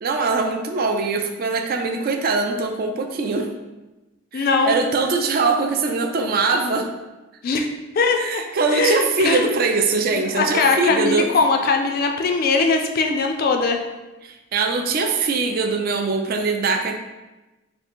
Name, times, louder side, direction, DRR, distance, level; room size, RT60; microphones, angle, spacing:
voice 1, 0.0-3.5 4.3-6.9 8.2-11.3 14.2-17.0, right 4 dB, 45° right, 5 dB, 0.3 m, -22 dB
voice 2, 4.3-4.8 7.4-7.7 7.9-8.4 8.7-9.4 10.1-13.8, left 4 dB, 45° left, 4 dB, 0.3 m, -20 dB
2.8 x 2.6 x 4.2 m, 1.1 s
head